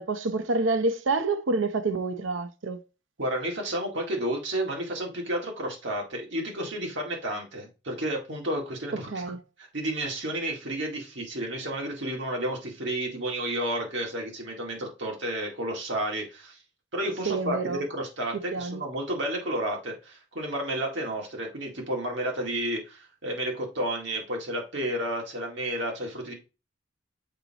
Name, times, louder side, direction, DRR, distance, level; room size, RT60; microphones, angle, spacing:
voice 1, 0.0-2.8 9.1-9.4 17.2-17.8 18.5-18.8, right 3 dB, 90° right, 0.7 m, -28 dB
voice 2, 3.2-16.6 16.9-26.3, right 1 dB, 70° right, 2.0 m, -31 dB
6.7 x 4.9 x 2.9 m
head